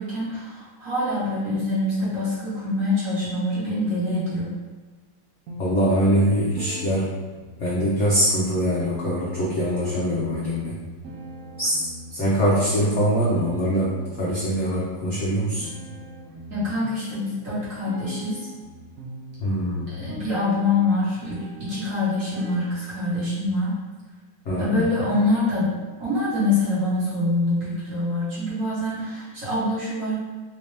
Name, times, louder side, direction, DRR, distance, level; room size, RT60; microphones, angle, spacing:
voice 1, 0.0-4.5 16.5-18.5 20.0-23.7 24.6-25.7 26.0-30.1, left 2 dB, 45° right, -9 dB, 1.4 m, -25 dB
sound 1, 5.5-23.4, equal, 60° right, 1.1 m, -41 dB
voice 2, 5.6-7.1 7.6-10.8 11.6-15.6 19.4-20.0 24.4-24.9, equal, 60° left, -7 dB, 0.7 m, -23 dB
3.5 x 2.8 x 3.2 m, 1.3 s
omnidirectional pair, 2.1 m